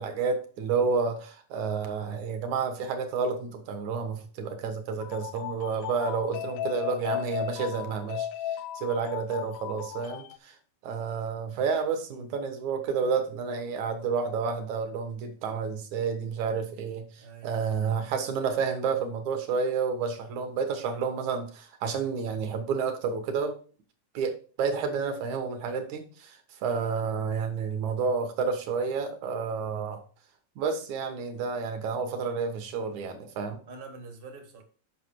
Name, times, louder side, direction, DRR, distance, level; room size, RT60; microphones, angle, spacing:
voice 1, 0.0-8.3 8.8-10.6 10.8-23.6 24.1-30.0 30.6-33.6, right 5 dB, 75° right, 2.6 m, -30 dB
sound 1, 5.0-10.4, left 11 dB, 80° left, 1.6 m, -36 dB
voice 2, 17.2-17.7 33.6-34.6, right 4 dB, 35° right, 0.8 m, -45 dB
8.4 x 5.7 x 4.5 m
omnidirectional pair, 3.4 m